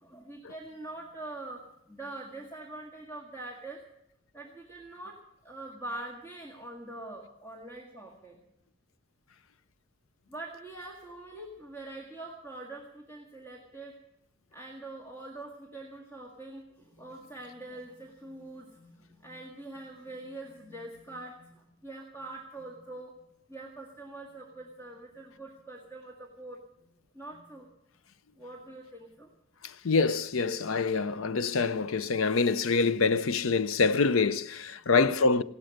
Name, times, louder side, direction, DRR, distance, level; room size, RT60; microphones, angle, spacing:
voice 1, 0.0-1.6 1.9-3.8 4.3-5.2 5.4-8.4 10.3-14.0 14.5-23.1 23.5-26.6 27.1-27.7 28.3-29.3 34.9-35.4, right 2 dB, 10° left, 1.9 m, -44 dB
voice 2, 29.6-35.4, left 4 dB, 85° left, 0.6 m, -26 dB
16.5 x 12.0 x 6.5 m
head